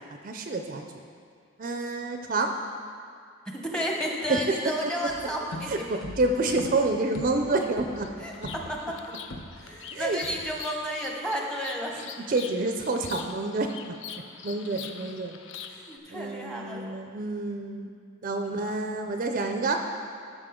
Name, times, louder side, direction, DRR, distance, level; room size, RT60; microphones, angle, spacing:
voice 1, 0.2-1.0 1.6-2.5 4.3-4.4 5.7-8.1 8.4-8.5 9.9-10.2 12.3-13.8 14.4-15.4 16.1-17.9 18.2-19.8, right 2 dB, 40° right, 4 dB, 0.4 m, -28 dB
voice 2, 3.5-5.8 8.2-8.8 9.6-11.9 15.9-16.9 18.5-18.7, equal, 5° left, -1 dB, 0.9 m, -32 dB
sound 1, 5.1-9.8 10.2-10.8, left 1 dB, 80° left, 0.9 m, -42 dB
Bird vocalization bird call bird song, 7.5-16.0, left 7 dB, 65° left, 0.5 m, -44 dB
13.5 x 6.2 x 3.7 m, 2.2 s
head